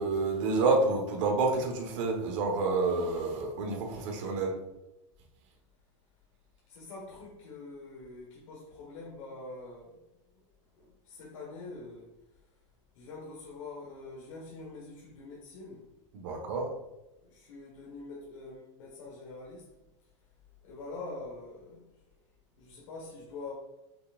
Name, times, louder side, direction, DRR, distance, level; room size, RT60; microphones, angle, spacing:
voice 1, 0.0-4.5 16.1-16.7, right 3 dB, 70° right, 1 dB, 1.2 m, -28 dB
voice 2, 6.7-10.0 10.3-10.4 10.7-12.1 12.9-15.8 16.2-16.4 17.3-19.7 20.6-21.8 22.6-23.5, left 3 dB, 85° left, -4 dB, 1.3 m, -45 dB
5.7 x 3.5 x 2.4 m, 0.96 s
supercardioid pair, 135°, 16 cm